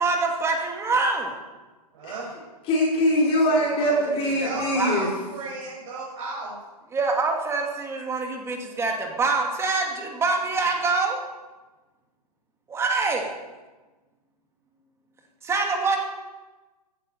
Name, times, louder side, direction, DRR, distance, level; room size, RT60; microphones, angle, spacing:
voice 1, 0.0-1.3 3.2-3.3 3.8-3.9 4.4-4.5 4.7-5.0 6.9-11.2 12.7-13.3 15.4-16.0, right 3 dB, 15° right, 2 dB, 2.3 m, -25 dB
voice 2, 1.9-2.3 4.4-6.6, right 3 dB, 45° right, -6 dB, 5.7 m, -34 dB
voice 3, 2.7-5.1, equal, 25° left, -3 dB, 4.6 m, -22 dB
15.5 x 9.7 x 7.9 m, 1.2 s
hypercardioid pair, 135°, 21 cm